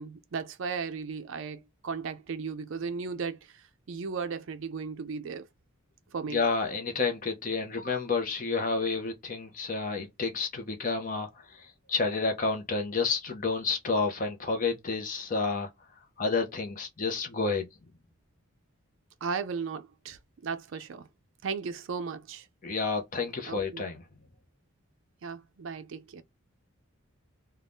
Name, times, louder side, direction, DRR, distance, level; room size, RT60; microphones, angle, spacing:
voice 1, 0.0-5.5 6.1-6.5 19.2-21.1 21.4-22.5 23.5-23.8 25.2-26.2, right 5 dB, 60° right, 0.4 m, -36 dB
voice 2, 6.3-15.7 16.2-17.7 22.6-24.0, left 4 dB, 35° left, 0.6 m, -30 dB
2.6 x 2.3 x 3.4 m
head